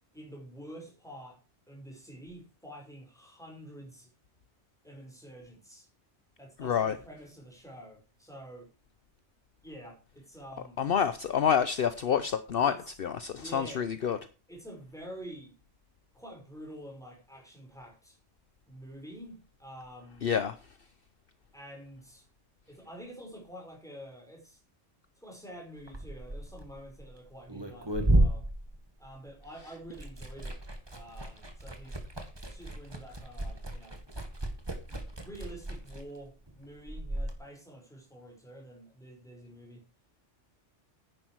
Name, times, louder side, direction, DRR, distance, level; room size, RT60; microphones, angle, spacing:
voice 1, 0.1-1.4 1.7-4.1 4.8-5.9 6.4-8.7 9.6-11.0 12.6-12.8 13.3-13.9 14.5-15.6 16.1-18.2 18.7-20.4 21.5-22.2 22.7-24.6 25.2-28.5 29.0-30.6 30.9-32.0 32.5-34.0 34.9-39.8, right 1 dB, 5° left, 5.2 m, -48 dB
voice 2, 6.6-7.0 10.8-14.2 20.2-20.6, left 7 dB, 55° left, 0.9 m, -28 dB
Liquid, 25.8-29.5 29.8-37.3, right 1 dB, 20° right, 1.9 m, -33 dB
10.5 x 10.0 x 4.7 m
omnidirectional pair, 1.2 m